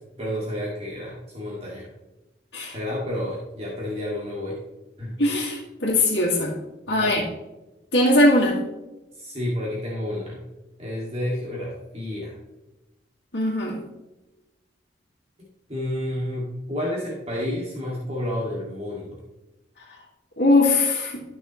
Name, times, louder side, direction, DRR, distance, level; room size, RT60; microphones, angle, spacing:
voice 1, 0.0-1.9 2.7-4.6 5.0-5.2 6.9-7.3 9.2-10.5 10.8-12.3 15.7-19.2, left 1 dB, 35° right, -4 dB, 2.2 m, -30 dB
voice 2, 5.2-6.5 6.9-7.2 7.9-8.6 13.3-13.8 20.4-21.2, left 1 dB, 75° left, -7 dB, 2.0 m, -20 dB
13.0 x 6.0 x 3.1 m, 1.0 s
head